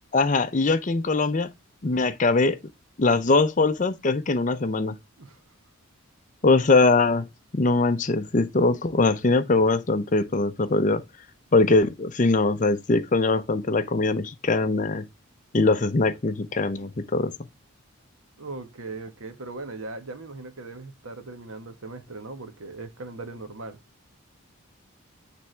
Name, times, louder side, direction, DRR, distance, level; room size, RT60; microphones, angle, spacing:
voice 1, 0.1-1.5 1.8-2.6 3.0-4.9 6.4-7.2 7.5-11.0 11.5-15.0 15.5-17.3, left 3 dB, 35° left, 0.5 m, -22 dB
voice 2, 18.4-23.8, right 3 dB, 75° right, 1.2 m, -39 dB
9.1 x 3.5 x 3.2 m
head